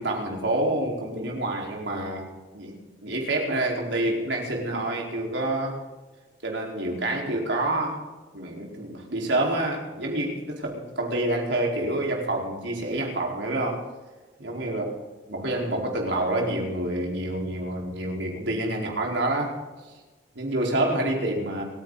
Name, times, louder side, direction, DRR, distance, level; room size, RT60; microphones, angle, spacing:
voice 1, 0.0-2.3 2.5-5.8 6.4-8.0 8.3-13.8 14.4-14.8 15.3-19.5 20.3-21.6, right 1 dB, 75° right, -1 dB, 4.7 m, -27 dB
29.5 x 10.5 x 4.1 m, 1.2 s
head